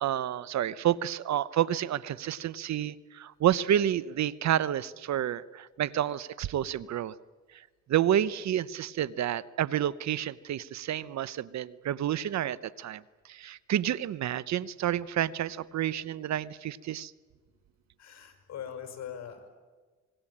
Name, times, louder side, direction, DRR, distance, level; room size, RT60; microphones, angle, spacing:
voice 1, 0.0-7.1 7.9-13.0 13.3-17.1, right 11 dB, 65° right, 19 dB, 0.8 m, -29 dB
voice 2, 18.0-19.5, left 8 dB, 60° left, 6 dB, 5.9 m, -41 dB
26.0 x 20.5 x 8.7 m, 1.3 s
cardioid pair, 90°, 30 cm